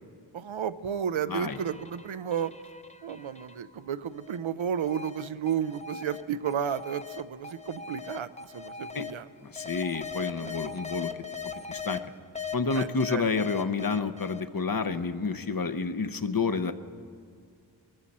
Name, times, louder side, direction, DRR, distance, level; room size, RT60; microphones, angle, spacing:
voice 1, 0.3-2.5 3.0-9.3 10.4-10.6 12.7-13.3, right 8 dB, 85° right, 14 dB, 0.6 m, -32 dB
sound 1, 0.9-3.7 4.2-9.1 9.6-12.0 12.4-14.6, left 6 dB, 15° left, 0.7 m, -40 dB
voice 2, 9.4-11.1 11.7-12.0 12.5-16.7, left 4 dB, 50° left, 10 dB, 0.8 m, -29 dB
22.5 x 14.5 x 4.2 m, 2.2 s
wide cardioid pair, 45°, 46 cm